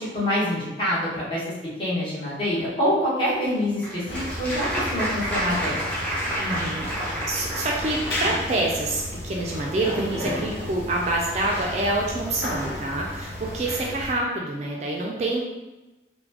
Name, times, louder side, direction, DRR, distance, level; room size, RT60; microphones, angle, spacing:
voice 1, 0.0-1.4 1.8-5.7, left 1 dB, 30° left, -9 dB, 1.1 m, -26 dB
Applause, 3.5-8.3, right 1 dB, 10° left, 0.6 m, -30 dB
sound 1, 4.1-14.1, left 1 dB, 65° left, 0.9 m, -33 dB
voice 2, 6.4-15.4, right 2 dB, 35° right, -2 dB, 0.3 m, -27 dB
3.9 x 2.1 x 2.8 m, 1.1 s
head